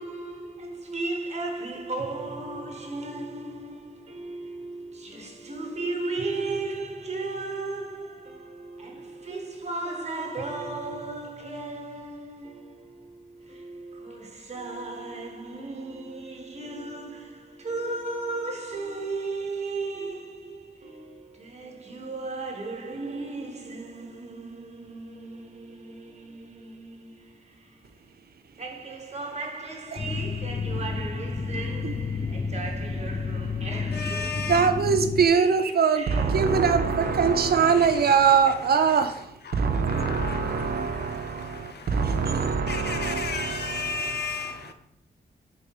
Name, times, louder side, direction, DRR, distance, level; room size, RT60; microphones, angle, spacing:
voice 1, 0.0-28.1 28.5-34.5 35.3-36.4, right 3 dB, 40° right, 1.2 m, -36 dB
sound 1, 30.0-35.3, left 4 dB, 30° left, 0.5 m, -31 dB
voice 2, 33.9-34.8 37.8-38.3 38.9-39.0 39.4-44.7, left 5 dB, 75° left, 0.7 m, -35 dB
voice 3, 34.5-44.2, right 6 dB, 65° right, 0.5 m, -23 dB
5.3 x 3.9 x 4.6 m
wide cardioid pair, 120°, 17 cm